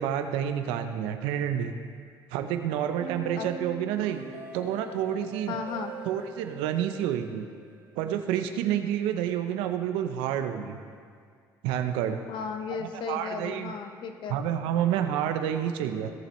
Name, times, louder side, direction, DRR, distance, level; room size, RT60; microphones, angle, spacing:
voice 1, 0.0-1.7 2.3-4.2 4.5-5.6 6.1-7.5 8.0-10.8 11.6-12.2 12.8-13.7 14.3-16.1, right 10 dB, 90° right, 7 dB, 0.7 m, -29 dB
sound 1, 3.0-8.0, right 2 dB, 55° right, 2.0 m, -43 dB
voice 2, 5.5-6.0 12.3-14.4, left 5 dB, 70° left, 7 dB, 0.9 m, -35 dB
17.0 x 6.8 x 3.1 m, 2.2 s
supercardioid pair, 80°, 9 cm